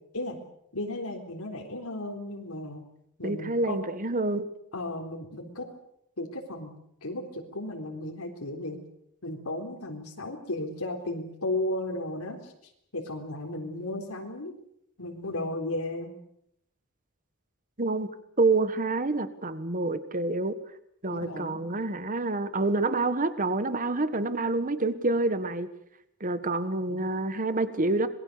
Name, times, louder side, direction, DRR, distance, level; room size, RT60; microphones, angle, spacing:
voice 1, 0.7-2.8 3.2-3.8 4.7-5.7 6.2-6.7 7.0-8.8 9.2-12.5 12.9-14.5 15.0-16.1 21.1-21.6 26.5-27.1, left 1 dB, 85° left, 1 dB, 3.9 m, -35 dB
voice 2, 3.2-4.5 17.8-18.1 18.4-20.6 21.0-25.7 26.2-28.1, right 2 dB, 35° right, 12 dB, 1.6 m, -27 dB
26.5 x 21.0 x 6.9 m, 0.75 s
head